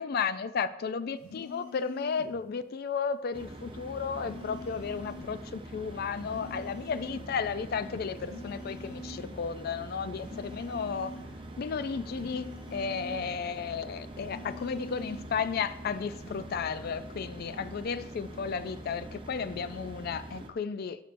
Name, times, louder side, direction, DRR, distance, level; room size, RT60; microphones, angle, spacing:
voice 1, 0.0-11.1 11.6-21.0, left 6 dB, 45° left, 13 dB, 0.3 m, -33 dB
sound 1, 1.2-2.3 4.2-5.3 6.2-7.3 8.2-9.3 10.2-11.4 12.2-13.4 14.2-15.4 16.2-16.5, left 2 dB, 85° left, 3.2 m, -45 dB
sound 2, 3.3-20.5, right 1 dB, 25° right, 0.6 m, -44 dB
12.0 x 6.7 x 2.6 m, 0.84 s
head